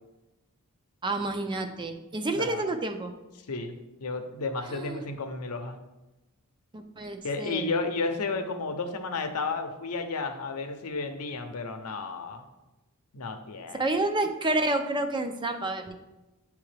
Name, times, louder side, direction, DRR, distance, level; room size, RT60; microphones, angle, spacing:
voice 1, 1.0-3.1 4.7-5.0 6.7-7.7 13.7-15.9, right 2 dB, 20° right, 6 dB, 0.4 m, -29 dB
voice 2, 4.0-5.8 7.2-12.4 13.1-13.9, left 3 dB, 80° left, 6 dB, 0.7 m, -32 dB
8.9 x 3.4 x 3.3 m, 1.0 s
head